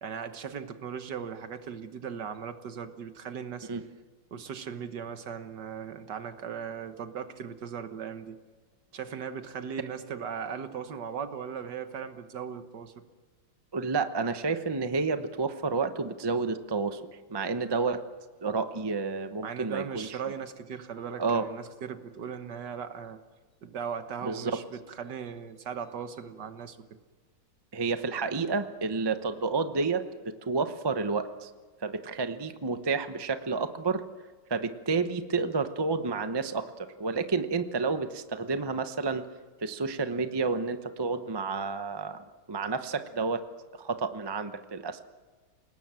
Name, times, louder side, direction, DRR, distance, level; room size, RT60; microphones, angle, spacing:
voice 1, 0.0-3.7 4.3-8.4 8.9-12.9 19.4-23.2 23.6-26.9, right 7 dB, 60° right, 9 dB, 1.7 m, -38 dB
voice 2, 13.7-18.0 18.4-20.1 21.2-21.5 24.2-24.6 27.7-31.5 31.8-34.0 34.5-39.3 39.6-43.4 43.7-45.0, right 4 dB, 30° right, 9 dB, 0.4 m, -30 dB
29.0 x 19.0 x 7.6 m, 1.3 s
omnidirectional pair, 2.2 m